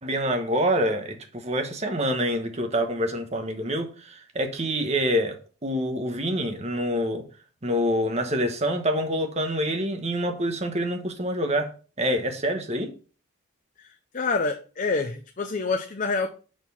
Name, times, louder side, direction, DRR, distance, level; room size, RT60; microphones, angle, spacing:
voice 1, 0.0-7.3 7.6-12.9, equal, 30° right, 1.1 m, -26 dB
voice 2, 14.1-16.3, left 4 dB, 35° left, 0.6 m, -27 dB
6.3 x 4.5 x 5.4 m
head